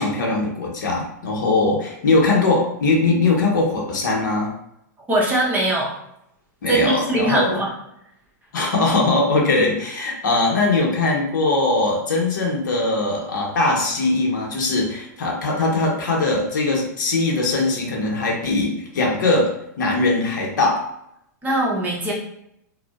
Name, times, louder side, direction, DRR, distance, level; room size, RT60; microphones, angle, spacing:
voice 1, 0.0-4.5 6.6-7.5 8.5-20.8, left 3 dB, 80° left, -1 dB, 0.7 m, -21 dB
voice 2, 5.1-6.0 6.7-7.7 21.4-22.1, right 1 dB, 15° right, -4 dB, 0.8 m, -21 dB
2.5 x 2.1 x 2.3 m, 0.79 s
hypercardioid pair, 120°, 10 cm